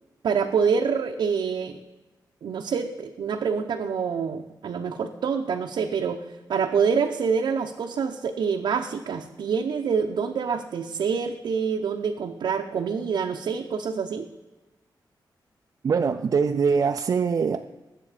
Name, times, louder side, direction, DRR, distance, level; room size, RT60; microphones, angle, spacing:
voice 1, 0.2-1.8 2.4-14.3, right 6 dB, 85° right, 2 dB, 0.8 m, -26 dB
voice 2, 15.8-17.6, right 5 dB, 45° right, 6 dB, 0.4 m, -23 dB
20.0 x 7.7 x 5.0 m, 1.1 s
wide cardioid pair, 180°, 8 cm